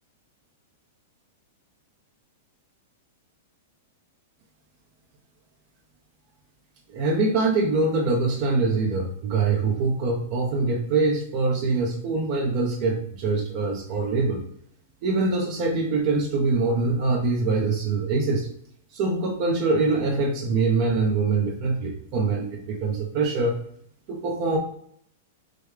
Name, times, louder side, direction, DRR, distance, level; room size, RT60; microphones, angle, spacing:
voice 1, 6.9-14.4 15.0-18.5 18.9-23.6 24.1-24.6, right 3 dB, 45° right, 0 dB, 0.7 m, -24 dB
4.9 x 2.2 x 3.3 m, 0.67 s
hypercardioid pair, 140°, 0 cm